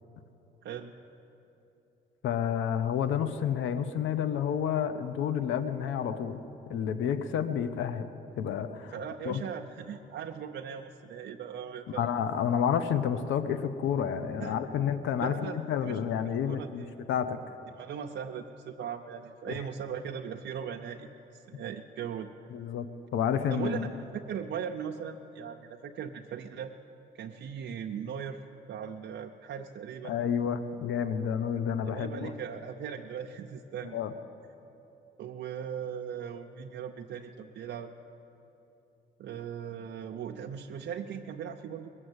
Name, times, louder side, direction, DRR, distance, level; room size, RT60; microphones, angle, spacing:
voice 1, 0.6-0.9 8.9-12.1 14.4-14.5 15.2-16.0 16.5-16.9 17.8-22.3 23.5-26.7 27.1-28.4 28.7-30.1 31.8-34.0 35.2-37.9 39.2-41.9, right 7 dB, 65° right, 2 dB, 0.6 m, -39 dB
voice 2, 2.2-6.4 6.7-8.1 8.4-8.9 9.2-9.4 11.9-17.4 19.5-19.6 22.5-22.9 23.1-23.9 30.0-32.3 33.9-34.1, left 8 dB, 80° left, 11 dB, 0.7 m, -30 dB
20.5 x 7.5 x 8.0 m, 2.9 s
cardioid pair, 90°, 20 cm